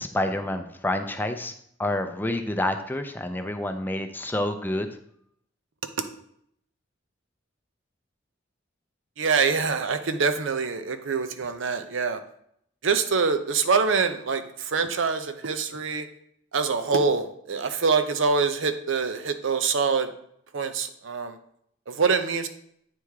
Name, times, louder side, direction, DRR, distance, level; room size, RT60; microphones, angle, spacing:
voice 1, 0.0-1.5 1.8-4.9, left 1 dB, 10° left, 7 dB, 0.4 m, -28 dB
voice 2, 9.2-12.2 12.8-16.1 16.5-20.1 20.5-21.3 21.9-22.5, right 5 dB, 70° right, 9 dB, 0.6 m, -25 dB
8.5 x 3.5 x 4.7 m, 0.70 s
head